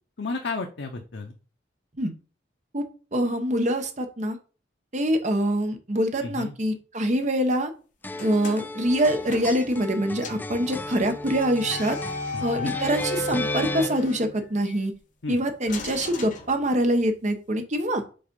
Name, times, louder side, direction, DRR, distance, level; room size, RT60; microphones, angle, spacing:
voice 1, 0.2-1.3 6.2-6.5 12.3-12.7 15.2-15.4, left 3 dB, 80° left, 3 dB, 0.8 m, -32 dB
voice 2, 3.1-4.4 4.9-7.7 8.2-12.0 12.4-14.9 15.3-18.0, right 1 dB, 40° right, 6 dB, 1.0 m, -25 dB
sound 1, 8.0-13.9, left 2 dB, 10° left, 0.5 m, -35 dB
sound 2, 8.1-9.9 10.2-10.5 11.6-14.8 15.7-17.1, left 2 dB, 45° left, 1.2 m, -35 dB
5.5 x 4.1 x 5.3 m, 0.37 s
head